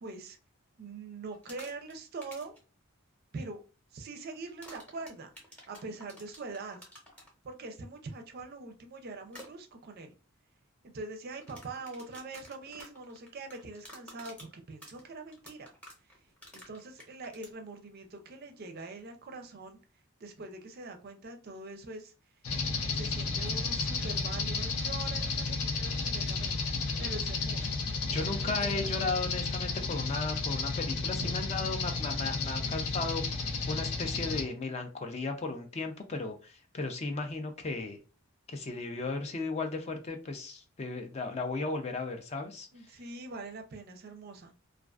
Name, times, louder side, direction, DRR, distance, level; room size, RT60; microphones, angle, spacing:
voice 1, 0.0-0.4 0.8-2.5 3.3-3.6 3.9-5.3 5.7-6.8 7.4-10.1 10.9-15.7 16.5-19.8 20.2-22.1 22.9-26.6 27.0-27.7 28.1-28.9 31.2-31.3 42.7-44.5, right 3 dB, 45° right, 5 dB, 0.4 m, -43 dB
sound 1, 1.3-1.9 2.2-2.6 4.6-7.3 9.3-9.5 11.3-17.5, equal, 5° left, 0.8 m, -50 dB
sound 2, 22.4-34.4, left 4 dB, 85° left, 0.6 m, -32 dB
voice 2, 28.0-38.0 38.5-42.7, left 3 dB, 30° left, 5 dB, 0.4 m, -35 dB
2.3 x 2.3 x 2.3 m, 0.33 s
head